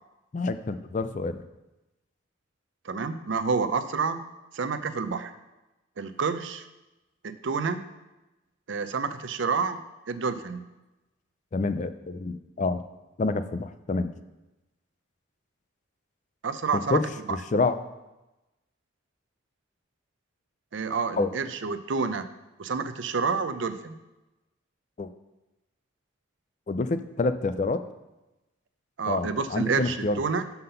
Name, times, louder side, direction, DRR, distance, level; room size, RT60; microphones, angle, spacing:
voice 1, 0.3-1.4 11.5-12.8 13.2-14.1 16.7-17.0 17.5-17.8 21.2-21.3 25.0-25.1 26.7-27.8 29.1-30.2, left 3 dB, 35° left, 11 dB, 0.3 m, -27 dB
voice 2, 2.9-4.2 4.5-5.3 6.0-6.6 7.2-7.8 8.7-9.8 10.1-10.6 16.4-17.0 20.7-22.2 22.6-23.9 29.0-30.5, right 5 dB, 70° right, 10 dB, 0.5 m, -28 dB
5.7 x 5.6 x 6.7 m, 1.0 s
head